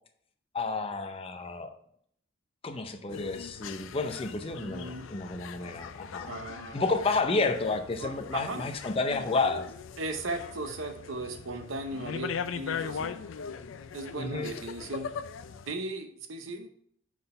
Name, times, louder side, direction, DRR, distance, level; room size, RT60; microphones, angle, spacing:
voice 1, 0.5-1.7 2.6-6.4 6.7-9.7 14.2-14.5, left 3 dB, 30° left, 5 dB, 0.5 m, -31 dB
sound 1, 3.1-15.7, left 6 dB, 80° left, 0.4 m, -40 dB
voice 2, 4.6-5.1 6.3-6.8 8.0-8.7 10.0-13.2 13.9-15.1 15.7-16.7, right 2 dB, 90° right, 6 dB, 0.8 m, -37 dB
6.1 x 3.9 x 5.3 m, 0.66 s
head